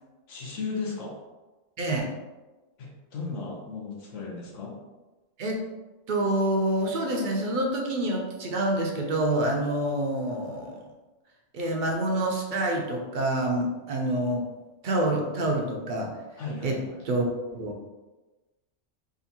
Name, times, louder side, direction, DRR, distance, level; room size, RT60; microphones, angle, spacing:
voice 1, 0.3-1.2 2.8-4.8 16.4-17.0, left 4 dB, 70° left, -2 dB, 1.1 m, -35 dB
voice 2, 1.8-2.1 5.4-5.6 6.1-10.8 11.5-14.4 14.8-16.1 16.6-16.8 17.0-17.9, right 1 dB, 55° right, 0 dB, 0.6 m, -27 dB
3.7 x 2.5 x 2.8 m, 1.2 s
omnidirectional pair, 1.3 m